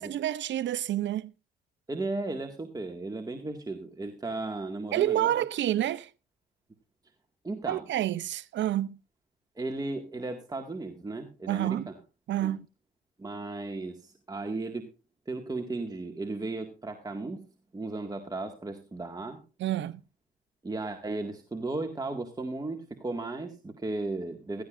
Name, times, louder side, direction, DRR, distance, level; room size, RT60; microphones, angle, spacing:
voice 1, 0.0-1.3 4.9-6.1 7.7-9.0 11.5-11.9 12.3-12.7 19.6-20.0, right 12 dB, 65° right, 0.7 m, -28 dB
voice 2, 1.9-5.3 7.4-7.8 9.6-12.0 12.4-12.5 13.2-14.9 15.3-17.4 17.7-19.4 20.6-24.6, right 2 dB, 20° right, 2.0 m, -35 dB
16.5 x 14.5 x 2.6 m
cardioid pair, 90°, 20 cm